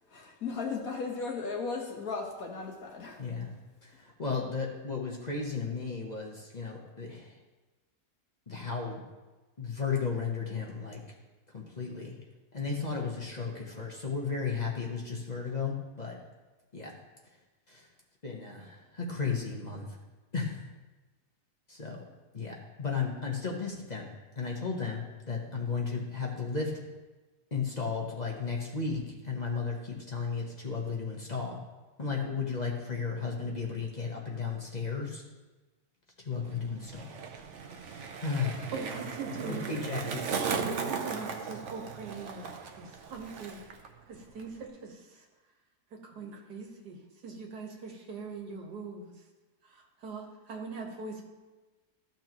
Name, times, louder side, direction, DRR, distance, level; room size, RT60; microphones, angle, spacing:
voice 1, 0.1-3.3, left 4 dB, 65° left, 1 dB, 1.6 m, -36 dB
voice 2, 3.2-3.5 4.2-7.2 8.5-9.0 9.6-11.0 11.5-12.1 12.5-16.2 16.7-17.0 18.2-18.6 19.0-19.9 20.3-20.5 21.8-22.0 22.3-24.1 24.4-26.7 27.5-31.6 32.0-35.2 36.3-37.1 38.2-38.5 39.7-40.2, left 5 dB, 30° left, -1 dB, 1.0 m, -34 dB
Skateboard, 36.3-43.9 44.1-44.6, right 6 dB, 55° right, 0.9 m, -37 dB
voice 3, 38.6-39.7 40.5-42.5 42.8-43.6 44.1-45.3 45.9-49.1 49.6-51.2, right 4 dB, 85° right, 1 dB, 1.9 m, -41 dB
14.0 x 5.8 x 3.0 m, 1.2 s
omnidirectional pair, 1.7 m